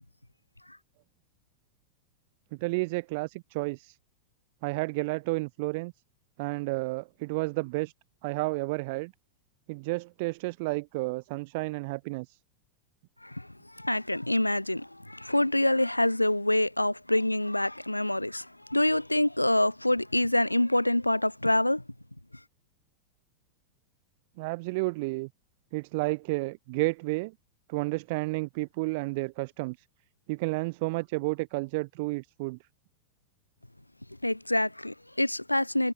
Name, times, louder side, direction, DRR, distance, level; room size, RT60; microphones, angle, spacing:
voice 1, 2.6-4.0 4.6-5.9 6.4-7.9 8.2-9.1 9.7-12.4 24.4-25.3 25.7-27.3 27.7-29.8 30.3-32.6, right 26 dB, 50° right, 3.4 m, -31 dB
voice 2, 13.2-21.8 34.2-35.9, left 1 dB, 85° left, 2.0 m, -26 dB
figure-of-eight pair, 90°, 0 cm